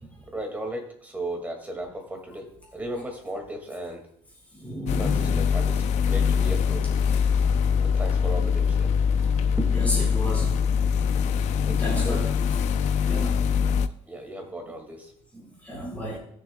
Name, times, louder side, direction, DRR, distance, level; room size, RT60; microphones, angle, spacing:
voice 1, 0.0-4.0 5.0-6.9 7.8-9.0 9.6-9.8 10.7-12.3 14.1-15.5 16.0-16.2, right 1 dB, 15° right, 3 dB, 2.1 m, -36 dB
voice 2, 4.5-5.5 7.4-7.5 9.7-10.6 11.7-12.3 13.1-13.4 15.6-16.2, left 1 dB, 10° left, -4 dB, 4.6 m, -32 dB
sound 1, 4.9-13.9, left 6 dB, 75° left, 0.5 m, -23 dB
18.0 x 7.0 x 2.3 m, 0.66 s
cardioid pair, 135°, 12 cm